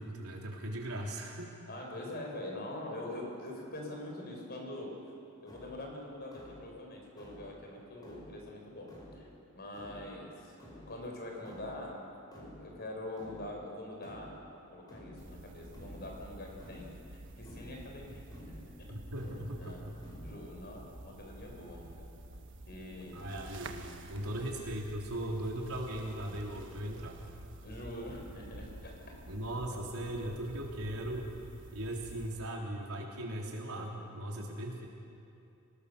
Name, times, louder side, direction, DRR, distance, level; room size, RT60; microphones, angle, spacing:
voice 1, 0.0-1.5 18.9-19.9 23.1-27.2 29.3-31.3 31.7-34.9, right 1 dB, 80° right, -1 dB, 3.8 m, -38 dB
voice 2, 1.7-5.1 5.4-9.3 9.5-10.6 10.9-12.0 12.3-14.3 14.7-19.0 19.6-19.9 20.2-22.1 22.7-23.3 24.3-24.4 27.6-29.2 29.7-29.8 30.2-30.3 34.3-34.5, left 1 dB, 45° left, 1 dB, 4.8 m, -44 dB
sound 1, 5.4-20.4, left 1 dB, 20° left, 4.9 m, -53 dB
sound 2, 15.2-32.3, right 1 dB, 55° right, 1.3 m, -50 dB
26.0 x 19.0 x 6.9 m, 2.7 s
head